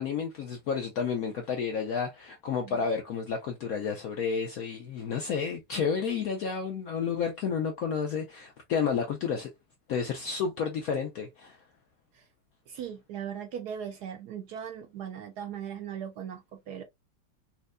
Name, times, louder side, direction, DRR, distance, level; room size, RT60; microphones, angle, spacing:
voice 1, 0.0-9.5 9.9-11.6, left 6 dB, 75° left, 0.8 m, -31 dB
voice 2, 12.7-16.8, right 8 dB, 75° right, 0.9 m, -39 dB
4.4 x 2.1 x 2.4 m
omnidirectional pair, 2.1 m